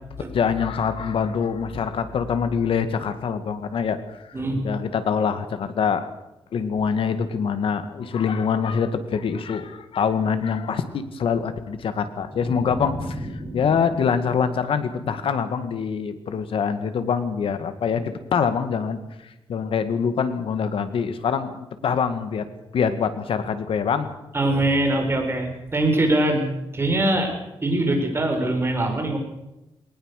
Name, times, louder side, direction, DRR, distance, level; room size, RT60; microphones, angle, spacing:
voice 1, 0.2-4.3 4.6-6.1 6.5-22.5 22.7-24.1, left 6 dB, 75° left, 10 dB, 2.1 m, -25 dB
voice 2, 4.3-4.6 24.3-27.3 27.6-29.2, right 1 dB, 25° right, 3 dB, 5.4 m, -22 dB
sound 1, 12.3-15.6, left 1 dB, 5° left, 6.2 m, -35 dB
20.5 x 19.0 x 6.7 m, 0.94 s
wide cardioid pair, 130°, 9 cm